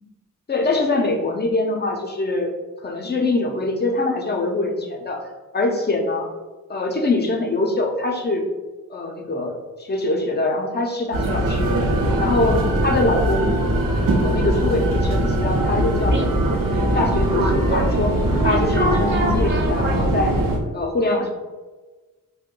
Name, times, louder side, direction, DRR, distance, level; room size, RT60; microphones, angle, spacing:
voice 1, 0.5-2.5 2.8-5.3 5.5-6.3 6.7-8.5 8.9-11.7 12.2-13.6 14.2-16.3 16.7-18.2 18.4-20.4 20.7-21.3, left 2 dB, 30° left, 2 dB, 0.5 m, -23 dB
sound 1, 11.1-20.6, right 1 dB, 90° right, 0.7 m, -21 dB
sound 2, 15.5-20.6, right 2 dB, 35° right, 0.6 m, -28 dB
3.6 x 2.2 x 3.7 m, 1.2 s
wide cardioid pair, 155°, 33 cm